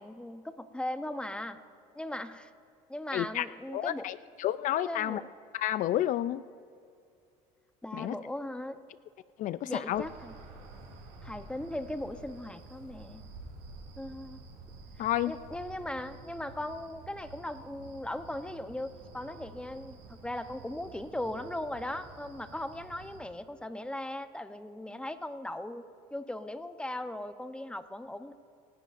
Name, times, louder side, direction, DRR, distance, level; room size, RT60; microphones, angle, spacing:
voice 1, 0.0-1.6 2.0-2.5 2.9-4.1 4.8-5.3 7.8-8.8 9.7-10.3 11.2-13.2 14.0-14.4 15.0-25.8 26.1-28.3, left 1 dB, 5° left, 10 dB, 0.8 m, -38 dB
voice 2, 3.1-5.2 5.5-6.4 7.9-8.2 9.4-10.0 15.0-15.3, left 13 dB, 55° left, 16 dB, 0.4 m, -30 dB
sound 1, 9.9-23.2, right 3 dB, 80° right, 3.9 m, -50 dB
27.5 x 11.0 x 2.6 m, 2.4 s
supercardioid pair, 95°, 16 cm